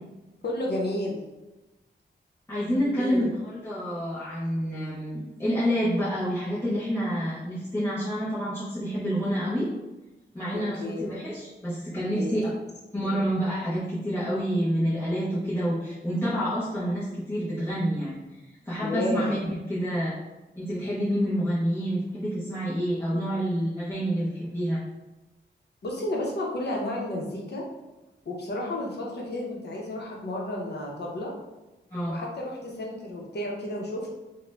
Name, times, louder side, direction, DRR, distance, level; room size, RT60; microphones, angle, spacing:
voice 1, 0.4-1.2 2.9-3.3 10.5-11.0 12.1-12.4 18.8-19.2 25.8-27.6 28.3-31.3 32.1-34.1, left 1 dB, 65° left, -2 dB, 0.7 m, -32 dB
voice 2, 2.5-9.7 10.3-12.5 12.9-18.2 18.7-19.4 19.7-20.1 20.6-24.8 31.9-32.2, equal, 10° left, -11 dB, 0.6 m, -28 dB
2.5 x 2.1 x 3.2 m, 1.1 s
wide cardioid pair, 110°, 19 cm